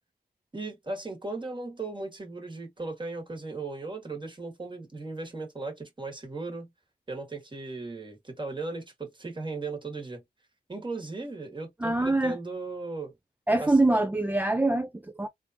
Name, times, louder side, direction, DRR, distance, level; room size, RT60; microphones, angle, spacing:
voice 1, 0.5-6.7 7.1-10.2 10.7-13.1 13.6-13.8, right 3 dB, 25° right, 1.6 m, -37 dB
voice 2, 11.8-12.4 13.5-15.3, right 2 dB, 10° right, 0.3 m, -24 dB
3.4 x 2.5 x 2.7 m
wide cardioid pair, 75°, 17 cm